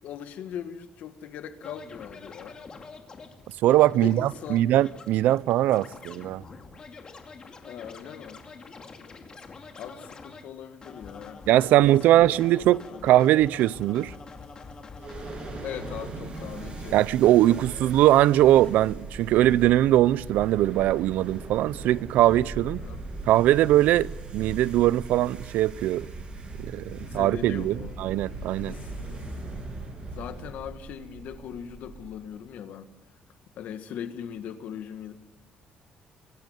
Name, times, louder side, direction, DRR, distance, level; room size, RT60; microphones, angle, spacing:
voice 1, 0.0-2.6 3.9-4.7 7.6-8.4 9.7-12.3 12.6-13.3 15.6-17.0 22.8-23.0 27.0-27.9 28.7-29.5 30.1-32.9 33.6-35.1, left 8 dB, 70° left, 1.7 m, -40 dB
Scratching (performance technique), 1.6-10.4 10.8-16.0 16.3-18.7, left 4 dB, 30° left, 2.3 m, -46 dB
voice 2, 3.6-6.4 11.5-14.1 16.9-22.8 23.3-26.1 26.6-28.8, right 14 dB, 85° right, 0.5 m, -21 dB
sound 1, 15.0-32.4, right 2 dB, 35° right, 6.4 m, -39 dB
25.0 x 12.0 x 9.4 m
cardioid pair, 155°, 3 cm